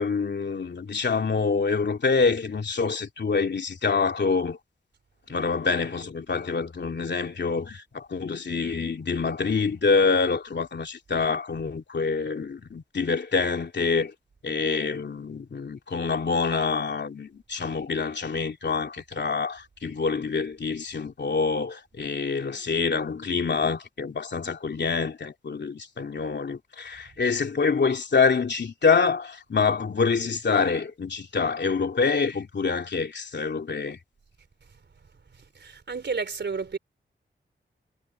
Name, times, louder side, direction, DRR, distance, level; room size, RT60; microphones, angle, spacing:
voice 1, 0.0-4.6 5.3-14.1 14.4-34.0, left 5 dB, 60° left, 3.0 m, -26 dB
voice 2, 35.3-36.8, right 4 dB, 65° right, 3.9 m, -32 dB
wide cardioid pair, 130°, 20 cm